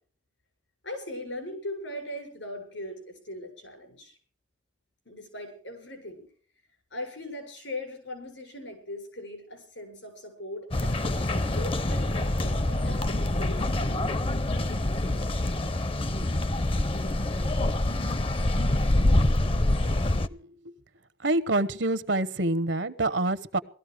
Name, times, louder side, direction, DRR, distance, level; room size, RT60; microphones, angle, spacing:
voice 1, 0.8-4.2 5.1-6.2 6.9-14.2, left 1 dB, 80° left, 5 dB, 7.3 m, -40 dB
sound 1, 10.7-20.3, left 1 dB, 30° left, 0.6 m, -26 dB
voice 2, 21.2-23.6, right 2 dB, 75° right, 13 dB, 1.0 m, -26 dB
18.5 x 14.0 x 5.0 m, 0.43 s
head